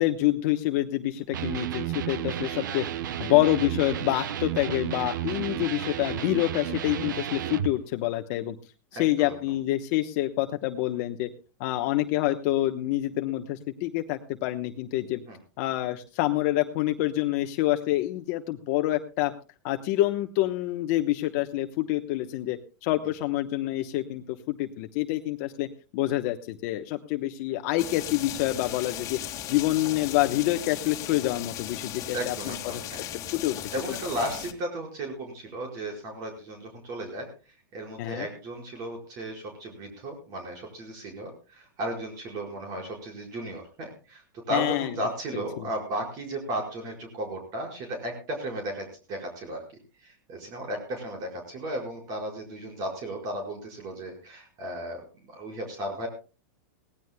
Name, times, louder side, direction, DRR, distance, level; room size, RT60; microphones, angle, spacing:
voice 1, 0.0-2.8 3.2-8.6 8.9-11.3 11.6-15.2 15.6-19.3 19.6-25.7 25.9-29.2 29.5-32.8 33.3-33.6 38.0-38.3 44.5-44.9 45.3-45.7, left 15 dB, 50° left, 6 dB, 1.0 m, -27 dB
Electric guitar, 1.3-7.7, right 11 dB, 85° right, 1.0 m, -32 dB
voice 2, 8.9-9.3 15.3-15.4 32.1-33.0 33.7-37.3 37.7-49.6 50.0-56.1, right 1 dB, 40° right, 1 dB, 4.9 m, -35 dB
sound 1, 27.8-34.5, left 12 dB, 35° left, 2.0 m, -37 dB
22.5 x 17.5 x 2.2 m, 0.33 s
supercardioid pair, 140°, 10 cm